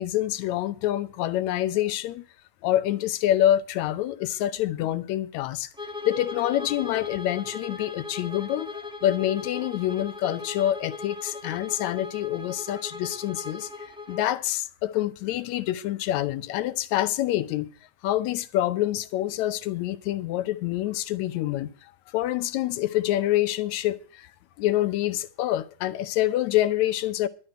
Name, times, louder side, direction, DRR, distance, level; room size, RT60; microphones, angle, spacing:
voice 1, 0.0-2.2 2.6-5.7 6.1-17.7 18.0-24.3 24.6-27.3, left 13 dB, 75° left, 2.0 m, -26 dB
Bowed string instrument, 5.7-14.3, left 3 dB, 5° right, 0.5 m, -38 dB
12.0 x 5.8 x 8.9 m
omnidirectional pair, 3.5 m